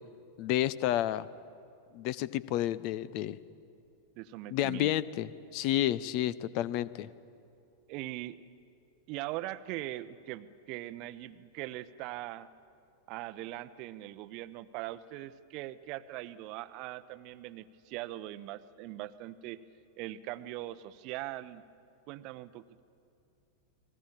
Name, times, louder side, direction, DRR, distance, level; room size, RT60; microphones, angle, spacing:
voice 1, 0.4-1.3 1.9-3.4 4.5-7.1, left 13 dB, 45° left, 19 dB, 0.7 m, -30 dB
voice 2, 4.2-4.9 7.9-8.5 9.1-12.5 13.1-19.6 20.0-21.6 22.1-22.8, right 15 dB, 40° right, 15 dB, 0.8 m, -41 dB
30.0 x 21.0 x 7.4 m, 2.5 s
figure-of-eight pair, 90°, 0 cm